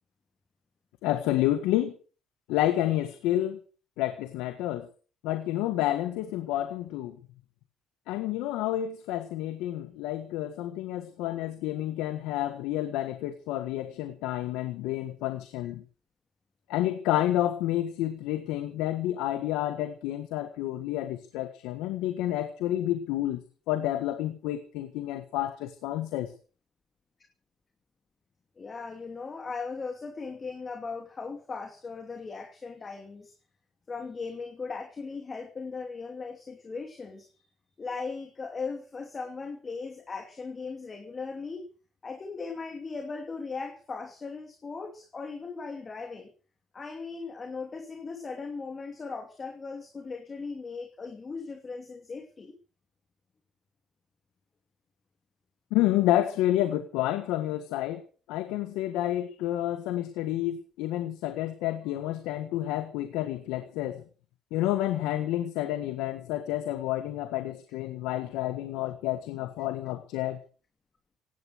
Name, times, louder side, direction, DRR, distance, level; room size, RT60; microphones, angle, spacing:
voice 1, 1.0-2.0 2.5-3.6 4.0-4.9 5.2-7.2 8.1-15.8 16.7-26.3 55.7-58.0 58.3-64.0 64.5-70.4, left 13 dB, 90° left, 10 dB, 1.6 m, -29 dB
voice 2, 28.6-33.3 33.9-37.3 37.8-41.6 42.0-46.3 46.7-52.5, left 4 dB, 30° left, 5 dB, 2.6 m, -38 dB
17.0 x 11.0 x 6.5 m, 0.39 s
cardioid pair, 110°, 0 cm